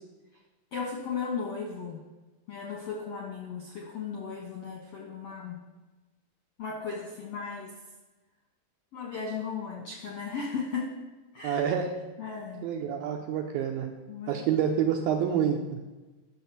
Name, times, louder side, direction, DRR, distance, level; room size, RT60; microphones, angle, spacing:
voice 1, 0.7-2.0 2.5-5.6 6.6-7.7 8.9-10.9 11.3-11.6 12.2-12.6 14.1-14.4, left 5 dB, 65° left, -1 dB, 1.6 m, -36 dB
voice 2, 11.4-11.9 12.6-13.9 14.3-15.8, right 8 dB, 80° right, 3 dB, 2.2 m, -27 dB
11.0 x 6.4 x 6.8 m, 1.2 s
omnidirectional pair, 4.9 m